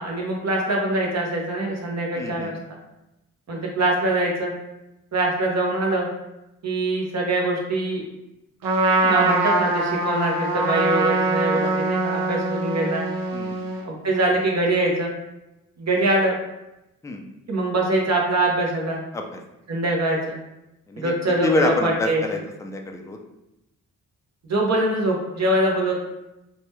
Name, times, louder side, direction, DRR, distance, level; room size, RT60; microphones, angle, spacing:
voice 1, 0.0-2.5 3.5-4.5 5.1-6.1 6.6-8.0 9.0-13.1 13.9-15.1 15.8-16.3 17.5-19.0 19.7-20.4 21.0-22.2 24.5-26.0, right 2 dB, 50° right, -1 dB, 0.9 m, -23 dB
voice 2, 2.2-2.5 11.6-11.8 13.3-13.7 17.0-17.2 19.1-19.4 20.9-21.1 21.4-23.2, left 2 dB, 10° left, 3 dB, 0.4 m, -27 dB
Trumpet, 8.6-13.9, right 2 dB, 70° right, 0.5 m, -23 dB
2.9 x 2.2 x 3.1 m, 0.93 s
cardioid pair, 65°, 35 cm